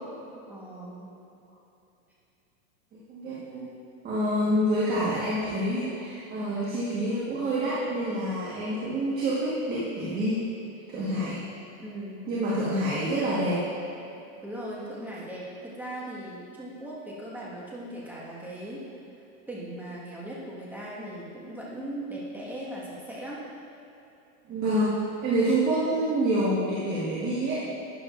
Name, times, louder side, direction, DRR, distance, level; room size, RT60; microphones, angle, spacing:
voice 1, 0.5-1.1 11.8-12.3 14.4-18.8 19.5-23.4, right 1 dB, 5° right, -6 dB, 1.5 m, -38 dB
voice 2, 3.1-3.7 4.0-10.4 10.9-11.4 12.3-13.7 24.5-27.6, right 1 dB, 20° right, -7 dB, 1.4 m, -27 dB
12.5 x 9.4 x 2.5 m, 2.9 s
supercardioid pair, 150°, 43 cm